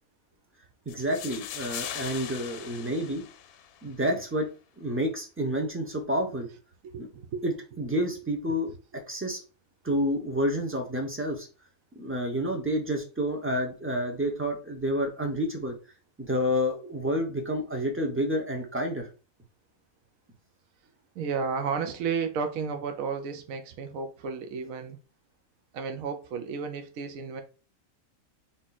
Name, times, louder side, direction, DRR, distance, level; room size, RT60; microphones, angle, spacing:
sound 1, 0.9-3.9, left 10 dB, 90° left, 1.1 m, -40 dB
voice 1, 0.9-3.2 3.8-4.5 4.8-6.5 7.0-7.1 7.4-8.7 9.1-9.4 9.8-11.5 11.9-15.7 16.2-19.1, equal, 10° right, 0.8 m, -29 dB
voice 2, 6.8-7.4 8.5-8.6 21.1-25.0 25.7-27.4, right 5 dB, 70° right, 1.1 m, -32 dB
3.7 x 3.1 x 4.1 m
omnidirectional pair, 1.5 m